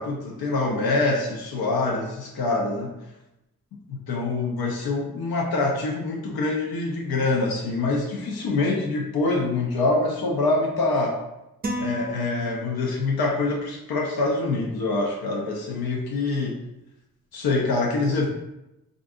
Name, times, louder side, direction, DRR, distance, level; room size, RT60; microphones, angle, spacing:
voice 1, 0.0-2.9 3.9-11.2 11.8-16.6 17.3-18.3, left 3 dB, 90° left, 0 dB, 0.5 m, -25 dB
sound 1, 11.6-13.1, equal, 30° right, 0.4 m, -32 dB
3.5 x 2.5 x 2.4 m, 0.91 s
wide cardioid pair, 105°, 35 cm